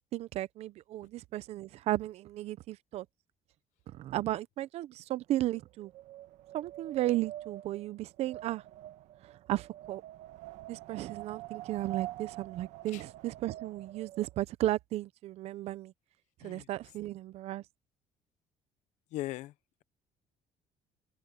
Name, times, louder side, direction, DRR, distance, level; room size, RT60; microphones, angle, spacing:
voice 1, 0.0-3.1 3.9-5.9 6.5-8.6 9.2-10.0 10.7-15.9 16.4-17.6, right 15 dB, 60° right, 0.7 m, -34 dB
Wind, 5.2-14.4, right 15 dB, 75° right, 1.6 m, -46 dB
voice 2, 19.1-19.5, left 16 dB, 80° left, 0.7 m, -38 dB
open air
cardioid pair, 155°, 12 cm